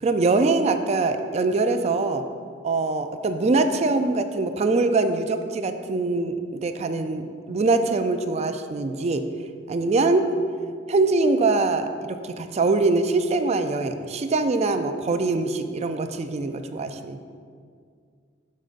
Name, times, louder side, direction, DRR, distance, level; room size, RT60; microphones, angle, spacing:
voice 1, 0.0-2.2 2.6-9.2 9.7-10.3 10.9-17.2, right 3 dB, 35° right, 8 dB, 0.4 m, -23 dB
8.8 x 6.5 x 2.5 m, 2.1 s
head